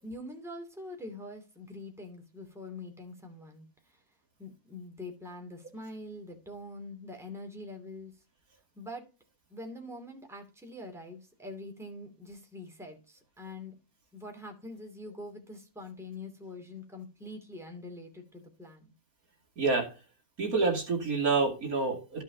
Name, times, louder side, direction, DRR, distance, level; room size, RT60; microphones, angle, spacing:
voice 1, 0.0-4.0 4.4-8.1 8.7-9.0 9.5-13.8 14.1-18.9, left 1 dB, ahead, 2 dB, 2.5 m, -44 dB
voice 2, 19.6-19.9 20.4-22.2, right 4 dB, 65° right, 1 dB, 3.0 m, -27 dB
14.0 x 5.9 x 2.8 m, 0.32 s
omnidirectional pair, 1.6 m